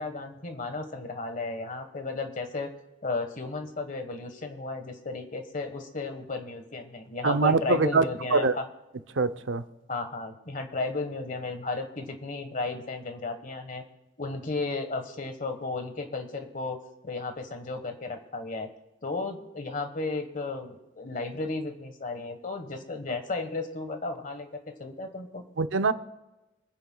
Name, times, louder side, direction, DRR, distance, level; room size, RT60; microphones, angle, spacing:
voice 1, 0.0-2.7 3.0-8.6 9.9-13.8 14.2-16.8 17.0-18.7 19.0-24.5 24.8-25.4, left 3 dB, 40° left, 1.3 m, -34 dB
voice 2, 7.2-8.0 8.3-8.5 9.2-9.6 25.6-25.9, right 4 dB, 75° right, 0.7 m, -23 dB
27.5 x 9.8 x 2.3 m
head